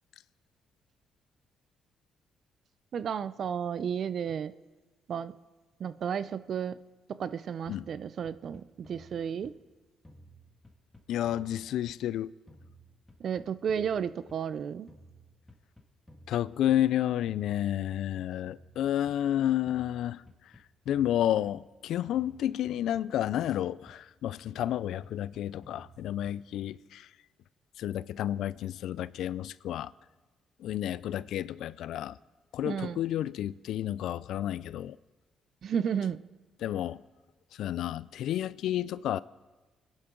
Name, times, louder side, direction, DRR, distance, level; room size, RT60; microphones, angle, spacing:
voice 1, 2.9-4.5 5.1-5.3 5.8-6.8 7.1-9.5 13.2-14.9 32.6-33.0 35.6-36.2, right 7 dB, 60° right, 0.5 m, -33 dB
sound 1, 7.7-9.7 10.0-12.2 12.5-14.6 14.9-17.0 17.3-19.3 19.7-21.8 22.1-24.2 24.5-26.6, equal, 10° left, 1.8 m, -56 dB
voice 2, 11.1-12.3 16.3-20.2 20.9-27.1 27.8-29.9 30.6-32.2 32.5-35.0 36.6-37.0 37.6-39.2, left 12 dB, 80° left, 0.3 m, -31 dB
24.5 x 10.5 x 3.8 m
cardioid pair, 90°, 0 cm